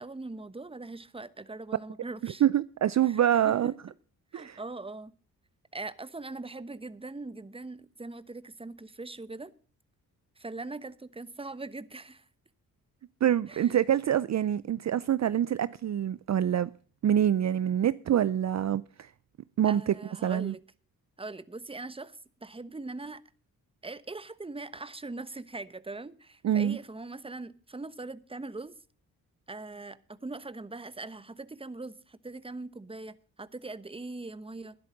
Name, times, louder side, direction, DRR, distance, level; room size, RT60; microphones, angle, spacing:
voice 1, 0.0-2.4 3.0-3.7 4.3-5.1 5.7-9.5 10.4-12.2 13.5-13.8 19.6-20.6 21.2-23.2 23.8-28.7 29.5-34.8, right 3 dB, 15° right, 1.0 m, -41 dB
voice 2, 2.2-3.7 4.3-4.6 13.2-16.7 17.0-19.1 19.6-19.9 20.2-20.5 26.4-26.8, right 10 dB, 50° right, 0.5 m, -26 dB
12.5 x 10.5 x 5.1 m
supercardioid pair, 55°, 37 cm